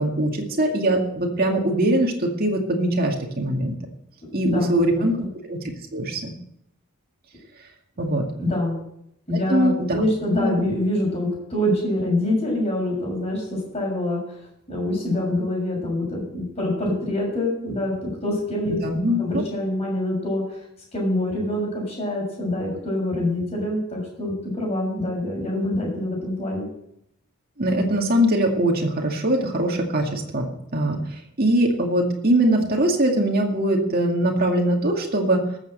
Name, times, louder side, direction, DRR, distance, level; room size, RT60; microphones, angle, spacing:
voice 1, 0.0-3.7 4.3-5.1 5.5-5.6 5.9-6.3 8.0-8.2 9.5-10.0 10.3-10.6 18.6-19.4 27.6-30.5 30.7-35.4, right 1 dB, 40° right, 1 dB, 2.1 m, -22 dB
voice 2, 4.4-5.3 8.0-8.1 8.4-8.8 9.3-14.2 14.7-18.8 19.2-20.6 20.9-26.7, left 1 dB, 30° left, -3 dB, 6.9 m, -25 dB
13.5 x 7.5 x 7.7 m, 0.75 s
head